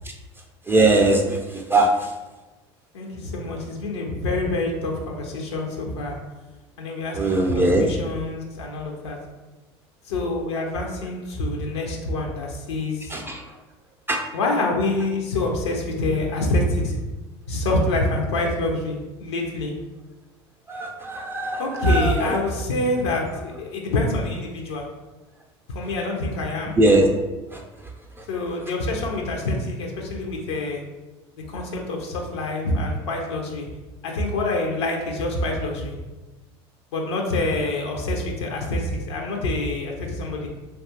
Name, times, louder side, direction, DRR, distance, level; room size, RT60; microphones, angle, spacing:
voice 1, 0.7-1.9 7.1-7.8 13.1-13.4 14.1-14.2 20.7-22.3 26.8-27.1, right 2 dB, 15° right, 1 dB, 0.3 m, -20 dB
voice 2, 2.9-6.2 6.8-9.2 10.1-13.2 14.3-17.0 17.5-19.7 21.6-24.9 25.7-26.8 28.3-30.8 31.5-33.7 34.0-36.0 36.9-40.5, left 2 dB, 90° left, 0 dB, 0.5 m, -26 dB
2.8 x 2.3 x 2.7 m, 1.2 s
hypercardioid pair, 85°, 14 cm